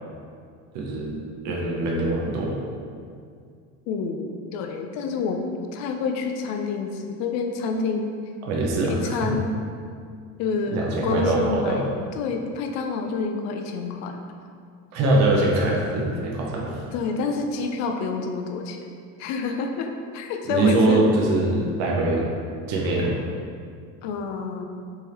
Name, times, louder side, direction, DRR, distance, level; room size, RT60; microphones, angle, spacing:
voice 1, 0.7-1.2 1.4-2.6 8.4-9.3 10.7-11.8 14.9-16.8 20.5-22.2 22.7-23.1, right 2 dB, 50° right, -3 dB, 0.7 m, -23 dB
voice 2, 3.9-8.1 8.9-9.5 10.4-11.8 12.2-14.2 16.9-18.8 19.2-21.1 24.0-24.6, left 4 dB, 50° left, 4 dB, 0.5 m, -28 dB
3.6 x 3.3 x 2.9 m, 2.2 s
supercardioid pair, 130°, 35 cm